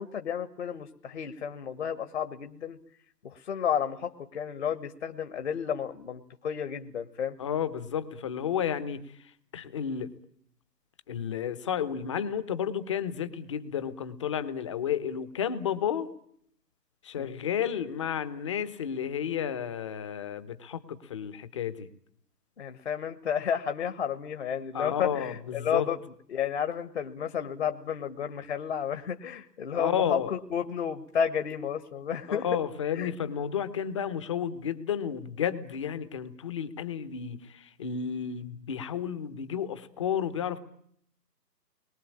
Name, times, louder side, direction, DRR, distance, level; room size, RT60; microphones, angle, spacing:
voice 1, 0.0-2.8 3.2-7.4 17.2-17.3 22.6-26.0 26.3-32.4 32.9-33.1, left 8 dB, 40° left, 8 dB, 1.6 m, -32 dB
voice 2, 7.4-10.1 11.1-16.1 17.0-21.9 24.7-25.9 29.7-30.3 32.3-40.6, left 8 dB, 20° left, 13 dB, 1.1 m, -32 dB
29.5 x 22.5 x 8.6 m, 0.69 s
figure-of-eight pair, 145°, 49 cm